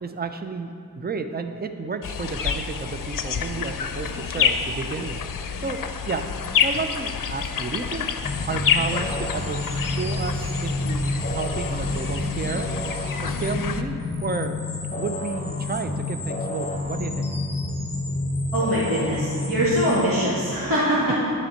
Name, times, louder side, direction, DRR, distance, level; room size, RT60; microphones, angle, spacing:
voice 1, 0.0-5.8 6.1-6.3 6.6-8.1 8.5-9.6 10.0-12.7 13.2-13.9 14.2-14.6 15.0-17.3, right 4 dB, 25° right, 8 dB, 0.6 m, -32 dB
sound 1, 2.0-13.8, left 7 dB, 60° left, 0.6 m, -28 dB
sound 2, 8.2-20.1, left 2 dB, 20° left, 1.0 m, -29 dB
voice 2, 18.5-21.2, equal, 65° right, -10 dB, 2.2 m, -23 dB
9.1 x 4.4 x 6.4 m, 2.4 s
cardioid pair, 50°, 37 cm